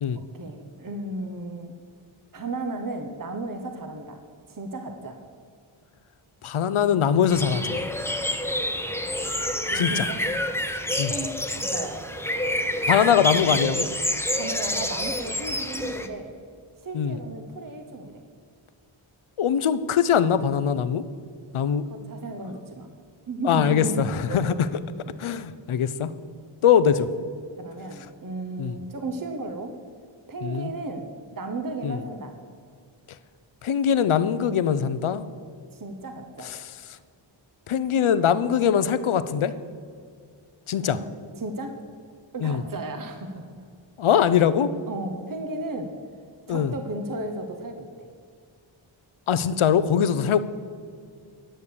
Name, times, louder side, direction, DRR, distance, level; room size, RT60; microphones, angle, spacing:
voice 1, 0.2-1.8 2.3-4.2 4.5-5.2 9.7-10.2 11.1-12.0 14.3-16.4 16.8-18.2 21.9-22.9 23.3-24.4 25.1-25.2 26.9-27.0 27.6-29.7 30.3-32.4 35.7-36.5 40.8-41.8 42.3-43.5 44.9-45.9 46.5-48.1, right 2 dB, 40° right, 6 dB, 1.0 m, -34 dB
voice 2, 6.4-7.8 9.7-10.1 11.0-11.1 12.9-13.9 16.9-17.2 19.4-21.0 21.5-21.8 23.4-24.5 25.2-26.1 26.6-27.0 28.6-28.8 30.4-30.7 31.8-32.0 33.6-35.2 36.6-36.7 37.7-39.5 40.7-41.0 42.4-42.6 44.0-44.7 46.5-46.7 49.3-50.4, left 8 dB, 80° left, 14 dB, 0.7 m, -22 dB
sound 1, 7.3-16.1, left 1 dB, 5° left, 0.9 m, -28 dB
11.0 x 6.6 x 7.0 m, 2.2 s
cardioid pair, 45°, 49 cm